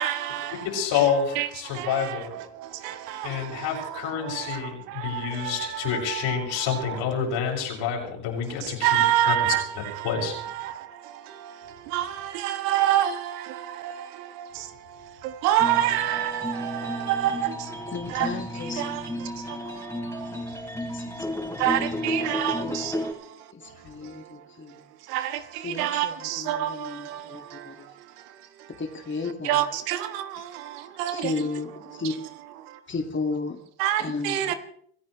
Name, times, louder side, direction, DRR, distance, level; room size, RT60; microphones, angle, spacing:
voice 1, 0.0-0.7 1.3-7.0 8.6-18.3 18.8-20.6 21.6-24.4 24.7-24.8 25.1-28.7 29.4-31.3 32.6-32.8 33.8-34.5, right 12 dB, 75° right, 1.5 m, -29 dB
voice 2, 0.6-2.3 3.2-9.5 10.0-10.5, left 7 dB, 65° left, 6.7 m, -28 dB
sound 1, 15.6-23.1, left 1 dB, 5° left, 4.0 m, -33 dB
voice 3, 17.9-19.2 19.7-19.9 20.3-20.4 20.9-21.7 22.6-22.9 23.5-24.8 25.6-27.9 28.8-29.6 31.1-32.1 32.9-33.6 34.0-34.6, left 3 dB, 25° left, 2.2 m, -34 dB
26.5 x 14.5 x 3.3 m
hypercardioid pair, 65°, 47 cm